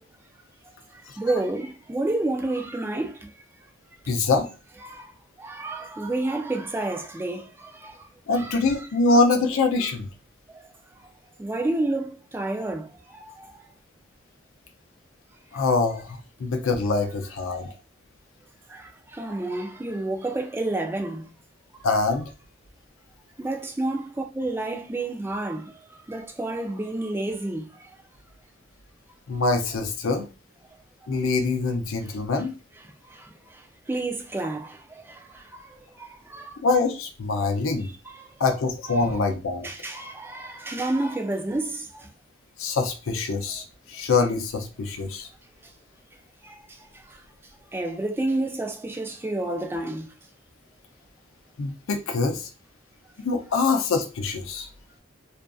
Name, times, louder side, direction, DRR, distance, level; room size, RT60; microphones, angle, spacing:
voice 1, 1.2-3.3 4.8-5.1 5.4-8.1 8.3-8.9 10.5-10.6 11.4-13.6 17.5-17.7 18.7-21.2 23.4-27.9 33.1-36.6 38.2-38.3 39.0-39.1 39.6-42.1 46.4-46.6 46.9-47.2 47.7-50.1, right 2 dB, 10° right, 0.3 m, -30 dB
voice 2, 4.1-4.5 8.3-10.1 15.5-17.7 21.8-22.2 29.3-30.3 31.1-32.5 36.6-37.9 38.4-39.7 42.6-45.3 51.6-52.5 53.2-54.7, left 3 dB, 85° left, 0.5 m, -24 dB
2.5 x 2.4 x 2.2 m
head